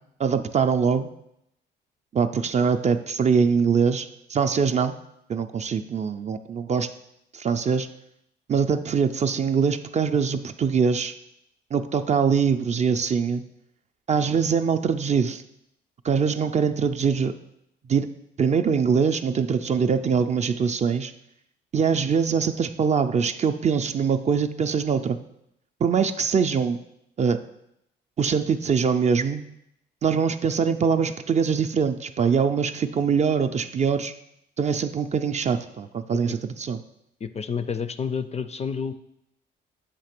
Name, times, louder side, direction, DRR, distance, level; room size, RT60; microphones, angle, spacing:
voice 1, 0.2-1.1 2.1-5.0 5.3-6.9 7.3-7.9 8.5-11.1 11.7-13.4 14.1-15.4 16.0-17.3 17.9-18.1 18.4-21.1 21.7-25.2 25.8-26.8 27.2-27.4 28.2-29.4 30.0-34.1 34.6-36.8, right 6 dB, 35° right, 9 dB, 0.4 m, -23 dB
voice 2, 37.2-38.9, left 6 dB, 35° left, 11 dB, 0.4 m, -30 dB
8.3 x 2.9 x 5.9 m, 0.79 s
cardioid pair, 90°, 20 cm